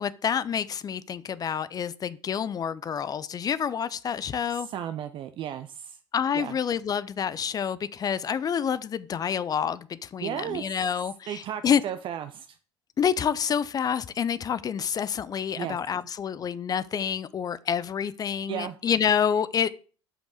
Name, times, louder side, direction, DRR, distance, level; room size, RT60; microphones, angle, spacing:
voice 1, 0.0-4.7 6.1-11.8 13.0-19.7, left 8 dB, 25° left, 0.5 m, -28 dB
voice 2, 4.5-6.0 6.3-6.5 10.2-10.6 11.3-12.6 15.6-15.8 18.5-18.8, right 10 dB, 40° right, 0.5 m, -34 dB
5.9 x 5.3 x 6.4 m
figure-of-eight pair, 65°, 14 cm